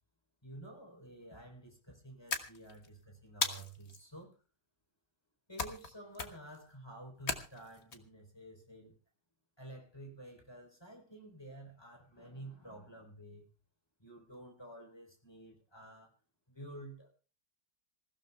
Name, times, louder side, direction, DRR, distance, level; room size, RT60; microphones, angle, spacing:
voice 1, 0.4-4.4 5.5-8.9 9.6-13.4 14.0-16.1 16.5-17.1, right 1 dB, 10° left, 1 dB, 3.9 m, -51 dB
sound 1, 2.3-2.9 3.4-4.0 5.6-5.9 6.1-6.6 7.3-8.0, left 4 dB, 35° left, 1.4 m, -37 dB
27.0 x 15.5 x 2.3 m, 0.36 s
omnidirectional pair, 2.2 m